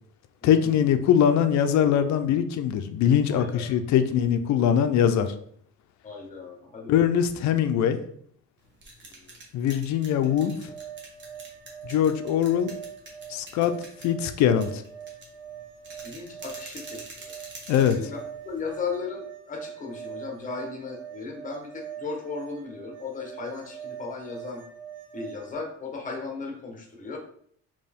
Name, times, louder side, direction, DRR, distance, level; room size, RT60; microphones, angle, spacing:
voice 1, 0.4-5.3 6.9-8.0 9.5-10.6 11.9-12.8 13.3-13.7 14.0-14.8 17.7-18.0, left 9 dB, 70° left, 9 dB, 0.5 m, -22 dB
voice 2, 3.3-3.8 6.0-7.0 16.0-17.3 18.0-24.6 25.1-27.2, left 4 dB, 25° left, 2 dB, 1.0 m, -36 dB
sound 1, 8.6-19.0, right 2 dB, 40° right, 1.3 m, -47 dB
sound 2, 10.2-25.5, right 8 dB, 80° right, 0.9 m, -43 dB
4.3 x 3.0 x 3.5 m, 0.65 s
cardioid pair, 125°, 29 cm